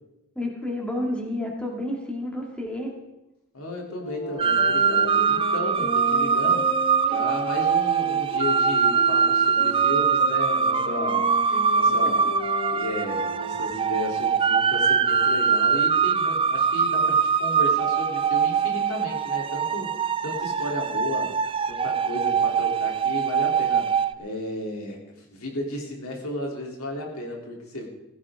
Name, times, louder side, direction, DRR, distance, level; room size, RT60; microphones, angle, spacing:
voice 1, 0.4-2.9 11.5-11.6, left 1 dB, 5° left, 0 dB, 2.5 m, -30 dB
voice 2, 3.5-6.7 7.1-21.3 21.7-27.9, left 1 dB, 70° left, -1 dB, 3.5 m, -34 dB
sound 1, 4.0-14.0, left 1 dB, 35° left, 3.4 m, -35 dB
sound 2, 4.4-24.1, right 6 dB, 25° right, 0.4 m, -23 dB
16.5 x 15.5 x 3.8 m, 0.93 s
head